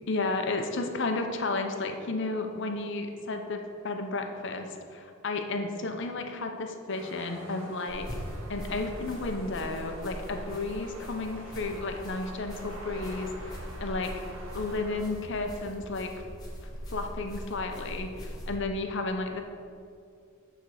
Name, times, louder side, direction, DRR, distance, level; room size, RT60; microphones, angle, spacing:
voice 1, 0.1-8.1 8.5-14.1 14.5-16.1 16.9-19.4, left 3 dB, 60° left, 4 dB, 0.8 m, -33 dB
sound 1, 6.9-15.0, right 1 dB, 75° right, 2.0 m, -46 dB
sound 2, 7.9-18.6, equal, 20° left, 1.7 m, -41 dB
8.3 x 4.5 x 6.4 m, 2.3 s
head